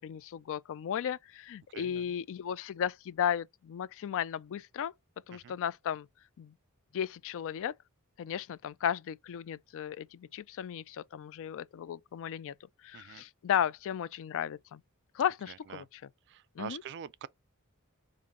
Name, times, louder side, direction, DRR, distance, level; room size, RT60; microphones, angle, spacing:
voice 1, 0.0-4.9 5.3-6.1 6.4-6.5 6.9-7.7 8.2-12.5 12.8-14.8 15.1-15.8 16.6-16.8, left 9 dB, 60° left, 0.3 m, -35 dB
voice 2, 1.7-2.1 5.3-5.6 12.9-13.2 15.5-15.9 16.3-17.3, right 8 dB, 55° right, 0.3 m, -45 dB
5.3 x 2.5 x 3.6 m
head